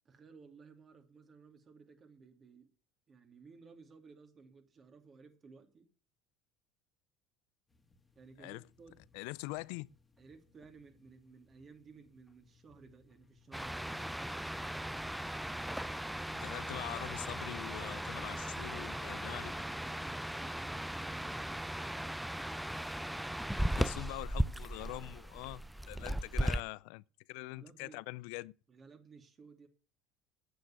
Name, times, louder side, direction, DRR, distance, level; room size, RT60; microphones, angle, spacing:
voice 1, 0.0-2.7 3.1-5.9 8.1-9.0 10.2-14.0 18.0-21.8 27.5-28.0 28.7-29.7, right 4 dB, 35° right, 2.9 m, -57 dB
sound 1, 7.7-26.1, left 3 dB, 15° left, 2.2 m, -69 dB
voice 2, 9.1-9.9 16.3-19.5 23.6-25.6 25.9-27.0 27.3-28.5, left 22 dB, 70° left, 0.5 m, -43 dB
sound 2, 13.5-26.6, right 1 dB, 5° right, 0.5 m, -37 dB
9.2 x 7.2 x 9.1 m
hypercardioid pair, 80°, 0 cm